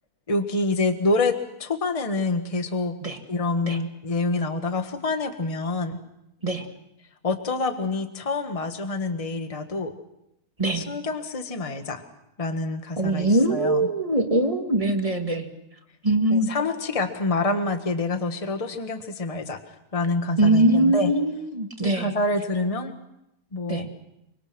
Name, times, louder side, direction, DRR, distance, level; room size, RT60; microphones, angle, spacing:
voice 1, 0.3-1.3 1.6-2.9 3.3-6.0 7.2-9.9 10.7-12.0 12.4-13.8 16.3-21.1 21.8-22.9 23.5-23.9, left 2 dB, 20° left, 7 dB, 1.5 m, -27 dB
voice 2, 13.0-15.5 16.0-16.5 20.4-22.2 23.7-23.9, right 1 dB, 20° right, 4 dB, 2.2 m, -22 dB
25.5 x 25.0 x 6.2 m, 0.84 s
omnidirectional pair, 1.7 m